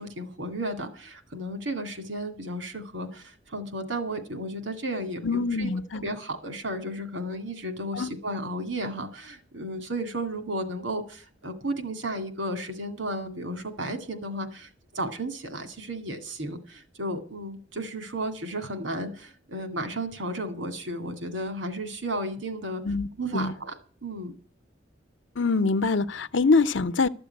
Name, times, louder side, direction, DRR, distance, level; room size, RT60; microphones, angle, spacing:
voice 1, 0.0-5.7 6.0-22.8 23.2-23.7 24.0-24.3, right 1 dB, 80° right, 2.2 m, -33 dB
voice 2, 5.2-6.0 7.9-8.1 22.8-23.1 23.3-23.5 25.4-27.1, left 4 dB, 75° left, 0.8 m, -24 dB
13.0 x 6.9 x 9.6 m
head